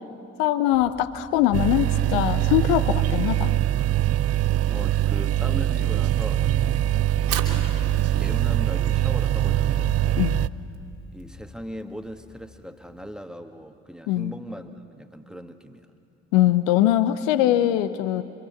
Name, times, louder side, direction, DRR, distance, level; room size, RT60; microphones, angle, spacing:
voice 1, 0.4-3.5 10.2-10.5 14.1-14.3 16.3-18.2, left 13 dB, 65° left, 13 dB, 0.9 m, -22 dB
sound 1, 0.7-3.0 4.4-13.3, left 3 dB, 30° left, 3.4 m, -44 dB
sound 2, 1.5-10.5, right 13 dB, 40° right, 0.6 m, -23 dB
voice 2, 4.7-6.9 8.2-10.2 11.1-15.9, equal, ahead, 6 dB, 1.8 m, -39 dB
Fire, 7.0-13.2, right 8 dB, 60° right, 2.8 m, -39 dB
29.0 x 25.5 x 7.8 m, 2.6 s
figure-of-eight pair, 45°, 39 cm